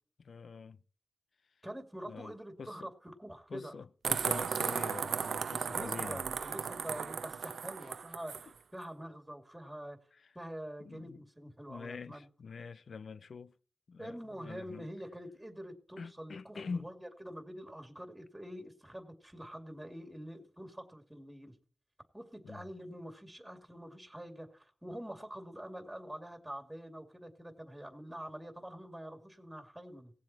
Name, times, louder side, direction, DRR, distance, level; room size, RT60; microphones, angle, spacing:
voice 1, 0.2-0.8 2.1-2.3 2.6-2.9 3.5-6.2 10.8-11.2 11.7-13.5 13.9-14.9 16.0-16.9 22.4-22.6, left 5 dB, 75° left, 0.5 m, -45 dB
voice 2, 1.6-3.8 5.6-10.0 10.3-12.3 14.0-21.5 22.1-30.1, equal, 10° right, 2.6 m, -46 dB
sound 1, 4.0-8.5, right 6 dB, 90° right, 0.5 m, -35 dB
17.5 x 7.6 x 4.5 m
cardioid pair, 60°, 0 cm